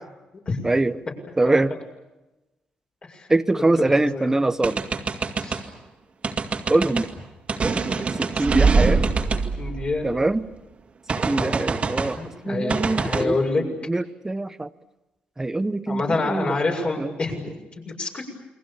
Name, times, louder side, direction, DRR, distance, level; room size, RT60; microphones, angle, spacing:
voice 1, 0.6-1.0 1.4-1.7 3.3-4.8 6.7-7.1 7.6-7.8 8.2-9.0 10.0-10.5 11.1-12.2 12.5-14.7 15.4-16.6 17.0-17.1, right 2 dB, 15° right, 12 dB, 0.9 m, -23 dB
voice 2, 3.6-4.4 5.4-5.6 9.6-10.1 11.4-11.5 12.2-13.6 15.9-17.5 17.9-18.3, left 3 dB, 40° left, 1 dB, 7.3 m, -27 dB
sound 1, 4.6-5.6 6.2-7.1 7.5-10.4 11.1-12.2 12.7-13.2, right 4 dB, 40° right, 2.3 m, -23 dB
29.5 x 22.5 x 7.1 m, 1.0 s
cardioid pair, 105°, 3 cm